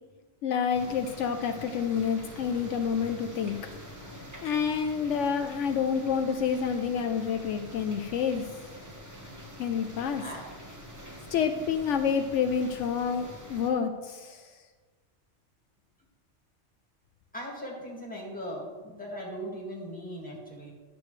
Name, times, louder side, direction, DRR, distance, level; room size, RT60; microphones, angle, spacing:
voice 1, 0.4-3.6 4.1-8.4 9.6-10.2 11.3-14.5, left 7 dB, 75° left, 6 dB, 0.9 m, -28 dB
sound 1, 0.7-13.7, equal, 15° right, 1.1 m, -45 dB
voice 2, 17.3-20.7, equal, 5° left, -2 dB, 1.8 m, -39 dB
11.0 x 6.9 x 3.2 m, 1.4 s
omnidirectional pair, 1.3 m